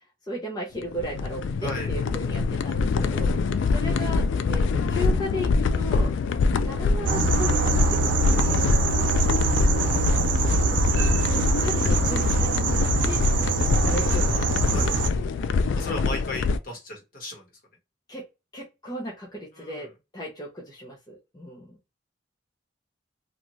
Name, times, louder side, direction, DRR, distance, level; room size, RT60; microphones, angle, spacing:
voice 1, 0.3-6.1 6.6-8.8 10.0-10.9 11.6-13.2 13.9-15.2 18.1-18.2 18.5-19.9 20.1-21.8, left 1 dB, 20° left, -3 dB, 0.6 m, -36 dB
sound 1, 0.8-16.6, left 4 dB, 80° left, 0.3 m, -25 dB
sound 2, 7.1-15.1, right 3 dB, 70° right, 0.4 m, -24 dB
voice 2, 15.8-17.4 19.6-19.7, left 1 dB, 50° left, -1 dB, 1.2 m, -34 dB
2.6 x 2.4 x 2.9 m, 0.25 s
head